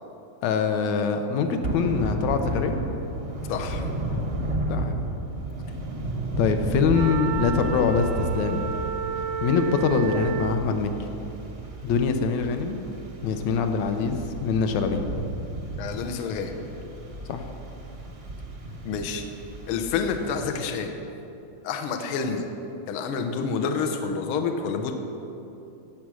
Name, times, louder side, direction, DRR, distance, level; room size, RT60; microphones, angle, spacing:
voice 1, 0.4-2.8 4.7-5.0 6.4-8.7 9.4-10.9 11.8-12.9 13.2-15.0 17.3-17.4, left 5 dB, 70° left, 6 dB, 1.8 m, -24 dB
Thunder / Rain, 1.6-20.7, right 1 dB, 65° right, 0.6 m, -33 dB
voice 2, 3.5-3.9 15.8-16.6 18.8-19.3 19.7-21.0 21.6-22.5 22.9-24.9, left 5 dB, 85° left, 5 dB, 1.2 m, -28 dB
Wind instrument woodwind instrument, 6.9-10.6, right 9 dB, 80° right, 1.7 m, -31 dB
16.5 x 7.2 x 6.2 m, 2.9 s
omnidirectional pair, 3.7 m